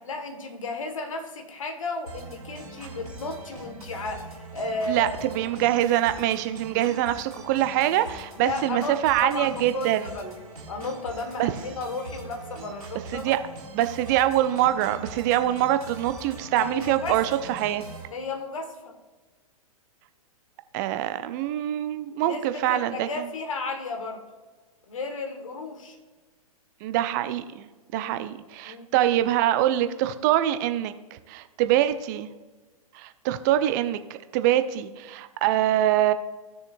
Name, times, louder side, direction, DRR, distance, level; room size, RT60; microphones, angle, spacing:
voice 1, 0.0-5.2 8.4-10.4 10.7-13.3 16.6-17.2 18.1-18.9 22.2-24.2 24.9-26.0 27.9-28.1 28.6-28.9, left 3 dB, 60° left, 5 dB, 1.6 m, -34 dB
sound 1, 2.1-18.1, right 2 dB, 80° right, 3.1 m, -42 dB
voice 2, 4.9-10.1 11.4-11.5 13.1-13.4 13.7-17.8 20.7-23.2 26.8-27.7 27.9-30.9 31.3-32.3 33.0-36.1, right 13 dB, 30° right, 11 dB, 0.5 m, -24 dB
16.0 x 6.5 x 2.6 m, 1.3 s
figure-of-eight pair, 110°, 19 cm